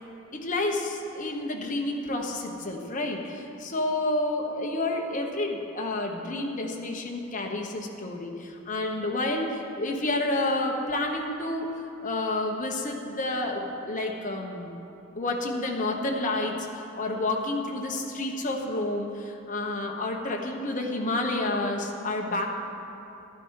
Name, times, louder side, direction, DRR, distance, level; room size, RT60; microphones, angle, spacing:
voice 1, 0.3-14.7 15.1-22.6, left 2 dB, 40° left, 1 dB, 1.2 m, -30 dB
12.0 x 12.0 x 4.8 m, 2.9 s
head